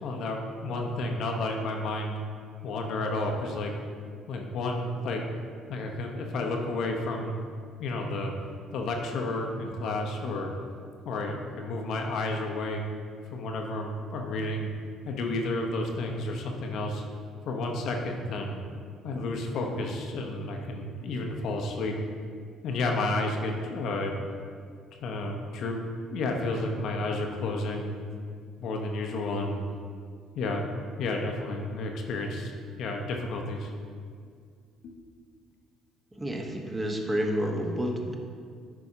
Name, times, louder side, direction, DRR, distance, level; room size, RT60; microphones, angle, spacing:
voice 1, 0.0-2.1 2.6-3.7 4.3-5.2 5.7-7.4 7.8-8.3 8.7-10.5 11.0-12.8 13.3-14.7 15.1-17.0 17.4-18.6 19.0-21.9 22.6-24.1 25.0-25.8 26.1-28.2 28.6-29.6 30.3-30.6 31.0-32.5 32.8-33.7 34.8-35.0, left 2 dB, 60° left, 2 dB, 0.8 m, -31 dB
voice 2, 36.2-38.1, equal, 20° right, 1 dB, 1.1 m, -29 dB
10.5 x 4.7 x 2.7 m, 2.1 s
hypercardioid pair, 55°, 0 cm